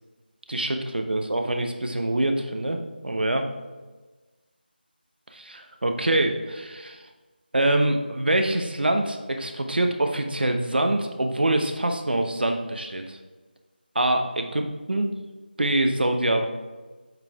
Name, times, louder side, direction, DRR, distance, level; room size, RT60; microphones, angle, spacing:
voice 1, 0.5-3.5 5.3-7.0 7.5-13.2 13.9-15.1 15.6-16.5, right 1 dB, 70° right, 5 dB, 1.0 m, -25 dB
7.9 x 5.1 x 3.5 m, 1.3 s
figure-of-eight pair, 170°, 6 cm